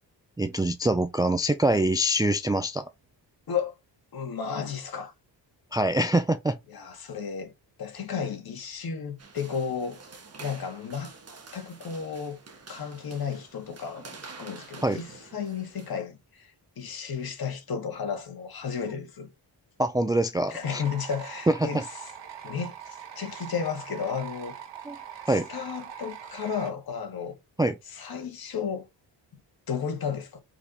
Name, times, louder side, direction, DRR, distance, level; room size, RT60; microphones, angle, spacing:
voice 1, 0.4-2.8 5.7-6.6 14.8-15.0 19.8-20.8 21.5-21.6 24.9-25.0 25.3-25.5 27.6-27.8, right 1 dB, 10° right, 0.3 m, -24 dB
voice 2, 4.1-5.1 6.7-7.5 7.8-10.0 10.4-11.2 11.5-12.4 12.7-19.3 20.5-22.1 22.4-24.6 25.3-27.4 27.9-28.9 29.3-29.4 29.7-30.4, left 6 dB, 55° left, 2.1 m, -33 dB
sound 1, 9.2-16.0, right 4 dB, 35° right, 1.5 m, -47 dB
sound 2, 20.6-26.7, right 9 dB, 75° right, 1.6 m, -42 dB
5.1 x 4.9 x 4.0 m
wide cardioid pair, 160°, 43 cm